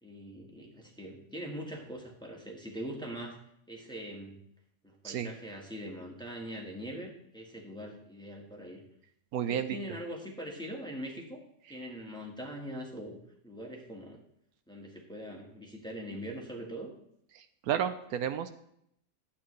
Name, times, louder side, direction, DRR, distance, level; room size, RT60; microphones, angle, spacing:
voice 1, 0.0-3.4 3.7-4.4 5.0-8.8 9.5-11.4 11.7-13.2 13.4-14.2 14.7-16.9, equal, 5° left, 0 dB, 1.3 m, -42 dB
voice 2, 9.3-9.8 17.3-18.5, right 9 dB, 80° right, 11 dB, 1.1 m, -32 dB
11.5 x 8.5 x 3.2 m, 0.73 s
omnidirectional pair, 1.6 m